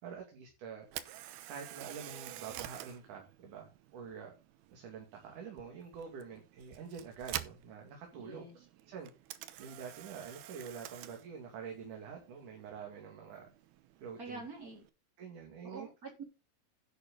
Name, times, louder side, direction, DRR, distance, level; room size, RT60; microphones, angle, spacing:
voice 1, 0.0-0.9 1.5-4.3 4.7-8.5 8.9-9.1 9.6-13.5 14.0-14.4 15.2-15.9, right 6 dB, 55° right, 2 dB, 3.7 m, -46 dB
Camera, 0.8-14.9, right 13 dB, 85° right, 2.9 m, -49 dB
voice 2, 8.2-8.5 14.2-14.8 15.6-16.2, right 3 dB, 25° right, 3 dB, 3.8 m, -46 dB
11.0 x 9.1 x 3.8 m, 0.28 s
omnidirectional pair, 4.4 m